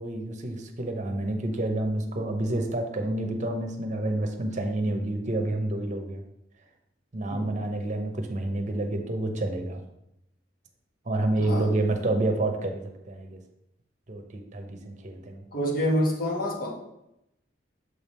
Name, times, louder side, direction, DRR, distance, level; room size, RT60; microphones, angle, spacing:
voice 1, 0.0-6.2 7.1-9.8 11.0-13.4 14.1-15.4, right 2 dB, 40° right, 4 dB, 0.8 m, -29 dB
voice 2, 15.5-16.7, equal, 55° left, 0 dB, 1.3 m, -27 dB
6.7 x 3.5 x 4.3 m, 0.83 s
head